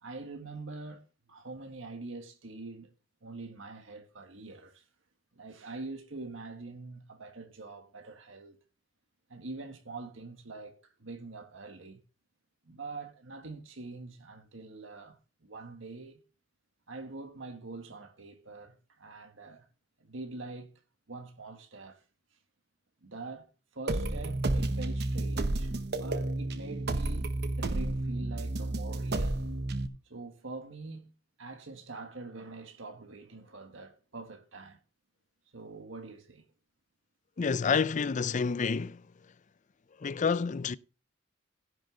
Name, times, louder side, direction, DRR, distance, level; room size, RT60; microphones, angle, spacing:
voice 1, 0.0-2.9 3.2-4.8 5.3-8.6 9.3-12.0 12.7-16.2 16.9-19.7 20.0-20.7 21.1-22.0 23.0-29.4 30.1-31.1 31.4-34.8 35.5-36.4, right 3 dB, 85° right, 1.6 m, -44 dB
sound 1, 23.9-29.9, right 2 dB, 60° right, 1.0 m, -31 dB
voice 2, 37.4-39.1 40.0-40.8, left 5 dB, 40° left, 0.5 m, -29 dB
16.0 x 6.4 x 3.9 m
head